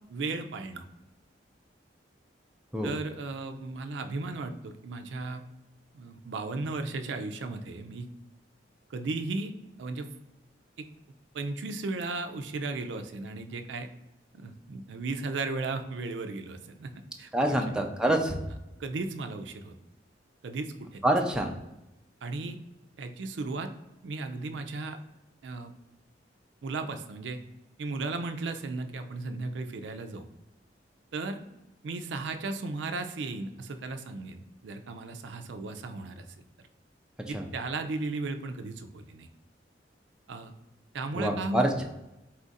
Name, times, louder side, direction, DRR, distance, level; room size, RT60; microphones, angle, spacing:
voice 1, 0.1-0.9 2.8-5.4 5.9-8.1 8.9-9.5 9.8-10.1 11.3-13.9 14.3-16.9 17.2-17.6 18.8-19.7 20.4-21.0 22.2-22.6 23.0-23.7 24.0-25.0 25.4-25.7 26.6-27.4 27.8-30.3 31.1-31.4 31.8-36.2 37.3-39.3 40.3-40.5 40.9-41.8, right 3 dB, 75° right, 8 dB, 0.4 m, -35 dB
voice 2, 17.3-18.4 21.0-21.5 37.3-37.4 41.2-41.8, right 1 dB, 5° right, 2 dB, 0.4 m, -26 dB
4.2 x 2.4 x 3.9 m, 0.95 s
head